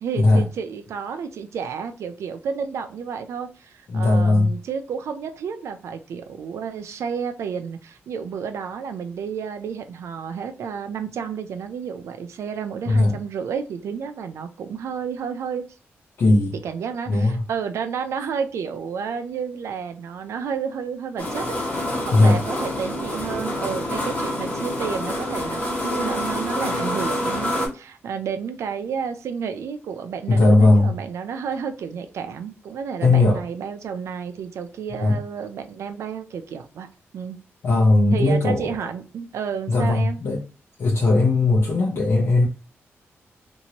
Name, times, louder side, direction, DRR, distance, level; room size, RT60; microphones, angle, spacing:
voice 1, 0.0-15.6 16.6-36.9 37.1-37.4 38.1-40.2, right 6 dB, 85° right, 0.5 m, -31 dB
voice 2, 3.9-4.5 12.9-13.1 16.2-16.5 17.1-17.4 22.1-22.4 30.3-30.9 33.0-33.4 35.0-35.2 37.6-38.8 39.7-40.4 40.8-42.5, left 2 dB, 60° left, 0.7 m, -18 dB
sound 1, 21.2-27.7, left 1 dB, 30° left, 1.1 m, -27 dB
2.8 x 2.6 x 2.9 m
wide cardioid pair, 115°, 5 cm